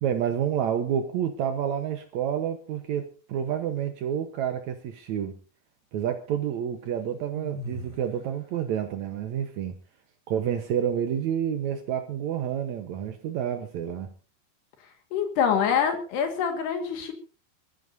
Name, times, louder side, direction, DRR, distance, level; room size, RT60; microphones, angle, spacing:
voice 1, 0.0-5.4 5.9-9.7 10.3-14.1, right 9 dB, 75° right, 1.7 m, -29 dB
sound 1, 7.3-8.2, equal, 20° left, 3.7 m, -37 dB
voice 2, 15.1-17.1, left 7 dB, 75° left, 3.9 m, -25 dB
25.5 x 14.5 x 2.7 m
omnidirectional pair, 4.9 m